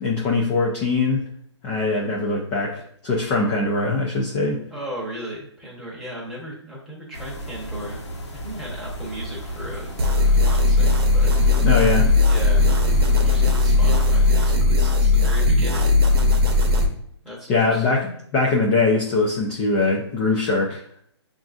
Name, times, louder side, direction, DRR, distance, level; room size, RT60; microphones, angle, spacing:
voice 1, 0.0-1.2 1.6-4.6 11.6-12.1 17.5-21.0, left 3 dB, 15° left, -2 dB, 0.3 m, -22 dB
voice 2, 4.7-11.3 12.2-15.9 17.2-18.0, equal, ahead, -6 dB, 0.8 m, -37 dB
sound 1, 7.1-14.4, equal, 70° left, 1.0 m, -35 dB
sound 2, 10.0-16.9, left 3 dB, 55° right, 0.8 m, -17 dB
5.9 x 2.4 x 2.4 m, 0.67 s
hypercardioid pair, 150°, 15 cm